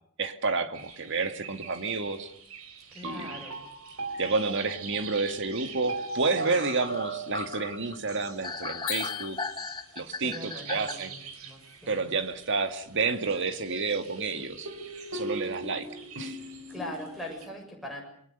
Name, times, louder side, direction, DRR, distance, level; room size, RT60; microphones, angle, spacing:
voice 1, 0.2-2.3 3.0-3.4 4.2-9.4 10.0-11.1 11.9-14.7 15.1-15.9 16.2-16.4, right 4 dB, 55° right, 8 dB, 2.1 m, -30 dB
sound 1, 0.7-17.5, right 3 dB, 80° right, 4.4 m, -40 dB
voice 2, 2.9-3.6 10.2-12.1 16.4-18.0, left 1 dB, ahead, 2 dB, 7.4 m, -41 dB
sound 2, 6.0-6.1 6.4-10.9, left 4 dB, 20° left, 1.3 m, -37 dB
sound 3, 8.9-10.0, left 15 dB, 65° left, 1.8 m, -37 dB
27.5 x 22.5 x 6.8 m, 0.66 s
head